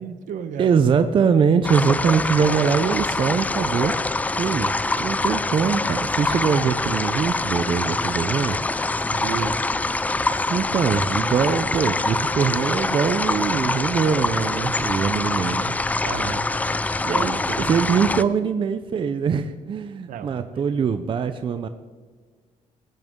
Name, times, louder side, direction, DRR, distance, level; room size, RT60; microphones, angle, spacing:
voice 1, 0.0-0.8 9.1-9.6 16.0-16.5 17.1-17.9 20.1-21.0, right 7 dB, 70° right, 11 dB, 1.1 m, -32 dB
voice 2, 0.6-3.9 4.4-8.6 10.5-15.8 17.0-17.4 17.7-21.7, right 6 dB, 35° right, 9 dB, 0.6 m, -22 dB
sound 1, 1.6-18.2, left 2 dB, 10° left, 0.4 m, -24 dB
20.5 x 10.5 x 3.7 m, 1.5 s
cardioid pair, 140°, 14 cm